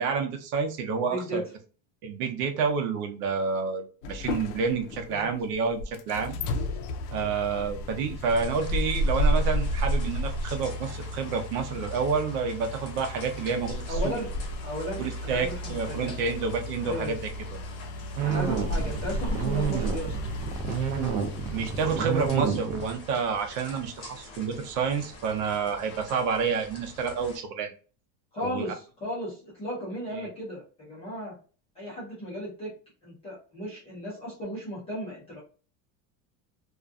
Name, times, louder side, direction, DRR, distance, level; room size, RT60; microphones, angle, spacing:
voice 1, 0.0-1.4 2.0-6.4 7.1-14.1 15.0-17.2 21.5-27.7 28.4-28.6 30.1-30.3, right 5 dB, 80° right, 5 dB, 0.8 m, -29 dB
voice 2, 1.1-1.5 5.1-5.3 6.4-6.6 7.1-7.3 13.9-14.3 14.6-16.1 16.8-17.2 18.2-20.2 28.3-31.3 31.7-32.7 33.0-35.4, equal, 15° left, -7 dB, 0.3 m, -35 dB
sound 1, 4.0-22.4, left 1 dB, 85° left, 0.5 m, -32 dB
sound 2, 8.3-27.4, left 3 dB, 30° left, 0.7 m, -47 dB
sound 3, 18.2-23.1, right 8 dB, 45° right, 0.5 m, -29 dB
2.5 x 2.2 x 2.4 m, 0.37 s
cardioid pair, 170°, 47 cm